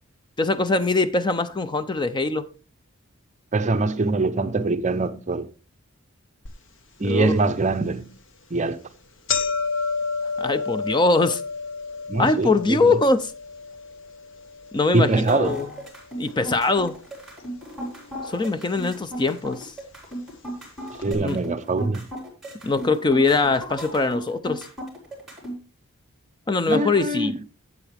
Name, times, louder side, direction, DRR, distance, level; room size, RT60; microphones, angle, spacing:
voice 1, 0.4-2.5 7.0-7.4 10.4-11.4 12.2-13.3 14.7-15.7 16.2-17.0 18.3-19.7 21.1-21.4 22.6-24.7 26.5-27.3, left 3 dB, 20° left, 0.5 m, -22 dB
voice 2, 3.5-5.5 7.0-8.1 8.5-8.8 12.1-13.0 14.9-15.6 21.0-22.1 26.7-27.4, right 3 dB, 35° right, 0.6 m, -23 dB
sound 1, 6.5-6.6 7.1-7.2 8.0-8.2 8.5-8.7 8.9-17.1 17.4-18.1 18.9-19.0 20.0-20.1 20.3-20.4 21.0-21.1, left 4 dB, 65° left, 1.2 m, -31 dB
sound 2, 14.9-25.5, right 1 dB, ahead, 4.6 m, -35 dB
12.0 x 8.1 x 3.4 m
head